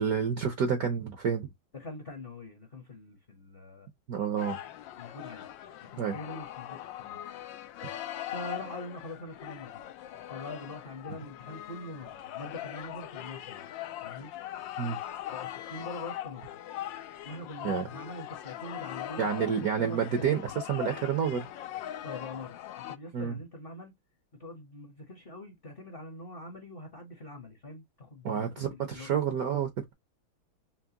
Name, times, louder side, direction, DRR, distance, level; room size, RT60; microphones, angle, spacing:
voice 1, 0.0-1.5 4.1-4.6 6.0-6.2 14.8-15.0 17.6-17.9 19.2-20.4 20.7-21.5 23.1-23.4 28.2-29.9, right 7 dB, 60° right, 1.0 m, -29 dB
voice 2, 1.7-3.9 5.0-5.4 5.9-7.2 8.2-9.8 10.2-13.6 14.0-14.3 15.3-16.6 17.2-20.4 22.0-23.9 24.4-29.1, left 2 dB, 40° left, 0.9 m, -44 dB
sound 1, 4.4-23.0, left 12 dB, 75° left, 1.2 m, -41 dB
6.0 x 2.1 x 2.7 m
omnidirectional pair, 2.3 m